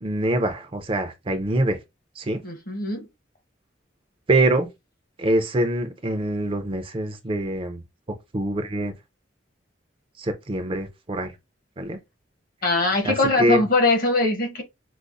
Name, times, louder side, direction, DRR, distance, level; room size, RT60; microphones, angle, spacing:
voice 1, 0.0-1.8 2.2-2.4 4.3-4.7 5.2-7.8 8.3-8.9 10.2-11.3 11.8-12.0 13.0-13.1 13.4-13.6, right 1 dB, 30° right, 0.5 m, -24 dB
voice 2, 2.4-3.1 12.6-14.6, left 2 dB, 50° left, 1.0 m, -22 dB
5.1 x 2.0 x 2.4 m
head